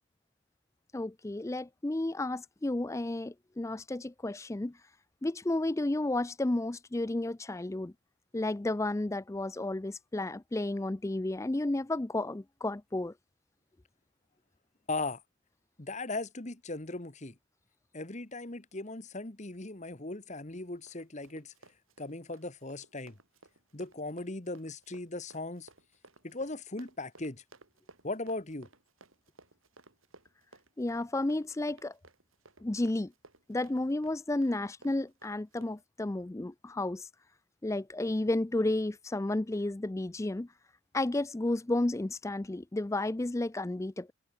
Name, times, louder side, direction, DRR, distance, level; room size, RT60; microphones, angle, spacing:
voice 1, 0.9-4.8 5.2-7.9 8.3-13.1 30.8-32.0 32.6-33.1 33.5-37.1 37.6-40.5 40.9-44.1, left 2 dB, 15° left, 0.4 m, -32 dB
voice 2, 14.9-15.2 15.8-17.3 17.9-21.5 22.0-23.2 23.7-25.7 26.2-27.4 28.0-28.7, left 2 dB, 35° left, 1.4 m, -38 dB
Run, 20.5-35.8, right 2 dB, 75° right, 6.5 m, -58 dB
head